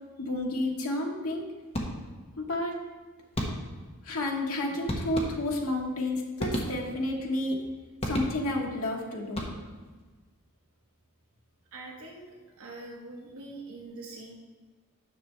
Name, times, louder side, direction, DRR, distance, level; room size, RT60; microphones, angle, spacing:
voice 1, 0.2-1.5 2.4-2.8 4.0-7.6 8.1-9.5, left 1 dB, 70° left, 0 dB, 1.1 m, -31 dB
sound 1, 1.7-2.3 3.4-3.9 4.9-5.7 6.4-7.2 8.0-8.7 9.2-9.9, equal, 30° left, 1.2 m, -34 dB
voice 2, 11.7-14.3, right 2 dB, 70° right, -2 dB, 1.3 m, -44 dB
10.0 x 6.4 x 3.3 m, 1.4 s
head